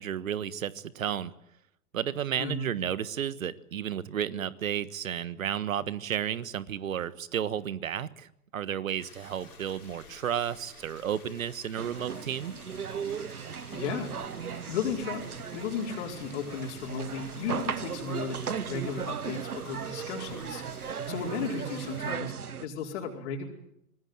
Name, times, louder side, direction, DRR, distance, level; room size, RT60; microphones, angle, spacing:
voice 1, 0.0-1.3 1.9-12.5, right 9 dB, 65° right, 17 dB, 1.4 m, -32 dB
voice 2, 2.4-2.7 13.7-14.1 14.7-15.2 15.5-20.6 21.1-23.5, left 5 dB, 50° left, 0 dB, 4.8 m, -34 dB
sound 1, 9.0-22.1, left 4 dB, 80° left, 5.0 m, -52 dB
sound 2, 11.8-22.7, right 7 dB, 80° right, 1.1 m, -37 dB
24.0 x 20.0 x 9.3 m, 0.76 s
figure-of-eight pair, 110°, 44 cm